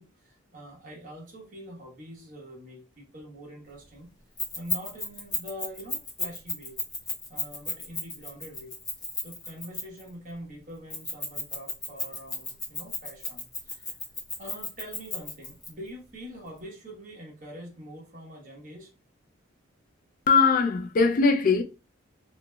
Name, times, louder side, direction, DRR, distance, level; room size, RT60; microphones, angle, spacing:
voice 1, 0.0-4.1 4.5-6.8 7.3-8.8 9.2-14.0 14.4-18.9, equal, 40° right, 1.1 m, -44 dB
Keys jangling, 4.4-10.1 10.9-15.7, left 3 dB, 20° left, 0.8 m, -33 dB
voice 2, 20.3-21.6, left 4 dB, 40° left, 0.3 m, -21 dB
3.1 x 2.9 x 2.2 m
head